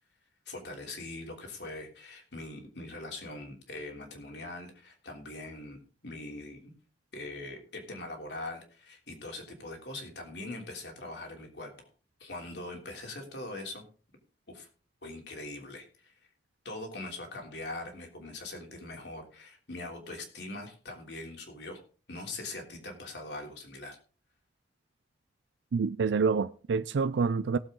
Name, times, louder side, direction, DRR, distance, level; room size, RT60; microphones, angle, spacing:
voice 1, 0.5-6.7 7.1-11.9 12.2-13.8 14.5-14.7 15.0-16.1 16.6-21.8 22.1-24.0, left 2 dB, 70° left, 3.2 m, -42 dB
voice 2, 25.7-27.6, right 5 dB, 90° right, 0.4 m, -27 dB
18.0 x 7.5 x 3.8 m
head